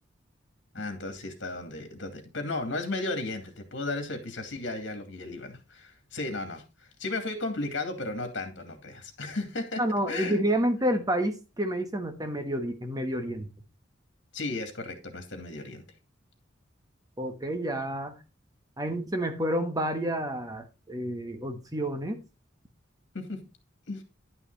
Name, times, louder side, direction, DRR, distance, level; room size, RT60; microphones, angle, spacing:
voice 1, 0.7-9.8 10.1-10.4 14.3-15.8 23.1-23.4 23.9-24.0, left 2 dB, 65° left, 2.5 m, -34 dB
voice 2, 9.8-13.5 17.2-18.2 18.8-22.2, right 1 dB, 20° right, 1.3 m, -29 dB
11.0 x 5.9 x 4.1 m
head